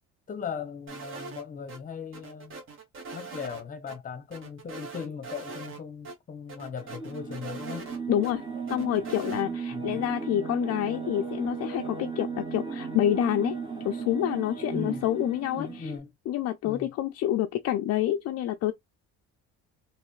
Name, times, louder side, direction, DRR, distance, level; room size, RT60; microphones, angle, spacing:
voice 1, 0.3-2.6 3.1-7.9 9.4-10.0 14.7-15.1 15.5-16.1 16.6-16.9, left 6 dB, 25° left, 0.8 m, -38 dB
sound 1, 0.9-1.8 2.1-3.6 3.9-4.0 4.3-5.8 6.0-6.1 6.5-8.3 8.7-9.4, right 4 dB, 40° right, 1.4 m, -42 dB
sound 2, 6.8-16.0, right 5 dB, 15° right, 1.1 m, -36 dB
voice 2, 8.1-8.4 8.7-13.6 13.8-15.9 16.3-18.7, left 12 dB, 55° left, 0.4 m, -28 dB
3.2 x 3.1 x 3.1 m
cardioid pair, 140°, 31 cm